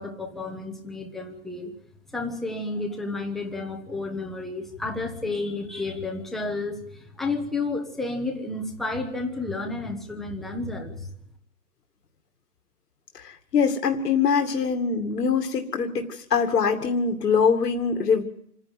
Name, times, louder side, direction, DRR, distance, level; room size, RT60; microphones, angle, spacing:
voice 1, 0.0-1.7 2.1-11.1, left 3 dB, ahead, 2 dB, 1.1 m, -31 dB
voice 2, 13.2-18.2, left 6 dB, 80° left, 5 dB, 2.4 m, -23 dB
27.5 x 10.5 x 9.1 m, 0.71 s
hypercardioid pair, 155°, 47 cm